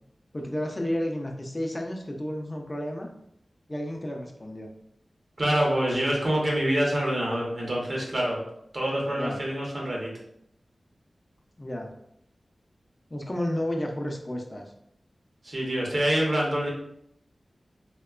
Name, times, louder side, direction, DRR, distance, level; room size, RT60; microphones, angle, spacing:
voice 1, 0.3-3.1 3.7-4.7 9.2-9.4 11.6-11.9 13.1-14.7, left 1 dB, 30° left, 2 dB, 0.4 m, -31 dB
voice 2, 5.4-8.4 8.7-10.1 15.4-16.7, right 1 dB, 55° right, -3 dB, 0.8 m, -26 dB
2.8 x 2.2 x 2.3 m, 0.74 s
wide cardioid pair, 65°, 0 cm